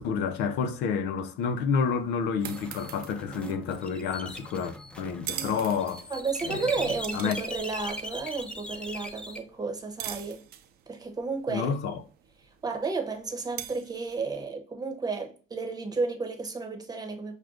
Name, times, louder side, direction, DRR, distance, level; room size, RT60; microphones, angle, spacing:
voice 1, 0.0-6.1 6.4-6.8 7.1-7.4 11.5-12.0, left 6 dB, 90° left, 0.5 m, -29 dB
sound 1, 1.8-14.4, right 11 dB, 65° right, 0.5 m, -45 dB
sound 2, 2.4-9.4, equal, 5° left, 0.6 m, -40 dB
voice 2, 6.1-10.4 10.9-11.8 12.4-17.4, right 4 dB, 25° right, 0.9 m, -32 dB
6.2 x 2.2 x 2.4 m
cardioid pair, 110°, 17 cm